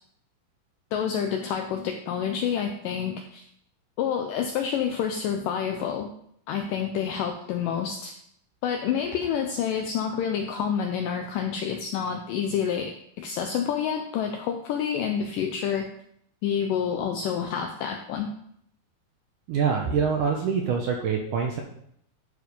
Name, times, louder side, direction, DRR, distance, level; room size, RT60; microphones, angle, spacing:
voice 1, 0.9-3.4 4.0-6.1 6.5-8.1 8.6-15.9 16.4-18.3, left 8 dB, 80° left, 4 dB, 1.9 m, -28 dB
voice 2, 19.5-21.6, right 6 dB, 75° right, 1 dB, 1.9 m, -25 dB
12.0 x 4.8 x 5.3 m, 0.70 s
omnidirectional pair, 4.6 m